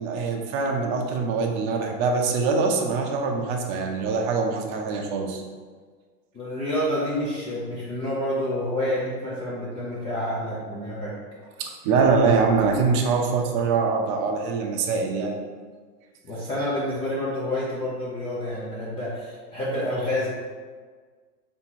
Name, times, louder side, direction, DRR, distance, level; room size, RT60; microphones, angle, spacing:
voice 1, 0.0-5.4 11.6-15.4, right 4 dB, 35° right, 2 dB, 0.6 m, -23 dB
voice 2, 6.3-11.1 16.2-20.3, left 1 dB, 15° left, -8 dB, 0.4 m, -28 dB
3.6 x 2.9 x 4.1 m, 1.6 s
hypercardioid pair, 120°, 47 cm